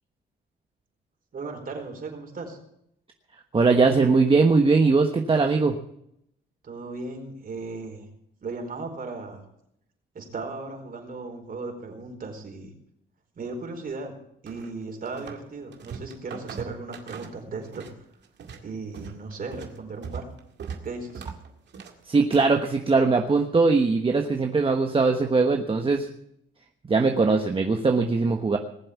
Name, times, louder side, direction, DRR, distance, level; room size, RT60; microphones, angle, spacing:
voice 1, 1.3-2.6 6.6-8.0 8.4-9.4 10.1-12.7 13.3-14.1 14.4-17.9 18.6-20.2 20.8-21.3, right 3 dB, 45° right, 3 dB, 4.6 m, -36 dB
voice 2, 3.5-5.8 22.1-26.1 26.9-28.6, right 4 dB, 25° right, 3 dB, 1.3 m, -21 dB
sound 1, 14.5-15.5 15.7-18.0 18.2-22.6, right 6 dB, 60° right, 2.2 m, -40 dB
19.5 x 7.6 x 8.3 m, 0.76 s
cardioid pair, 90°, 20 cm